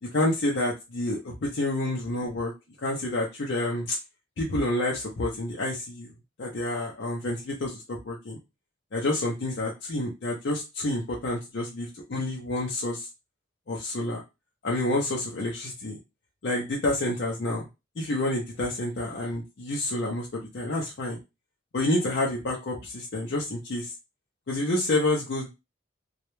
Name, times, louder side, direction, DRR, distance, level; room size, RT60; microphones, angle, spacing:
voice 1, 0.1-2.5 2.8-4.0 4.4-6.1 6.4-8.4 8.9-13.1 13.7-14.2 14.6-16.0 16.4-17.7 18.0-21.2 21.7-23.9 24.5-25.5, left 1 dB, 55° left, -2 dB, 0.5 m, -28 dB
2.2 x 2.0 x 3.0 m, 0.24 s
head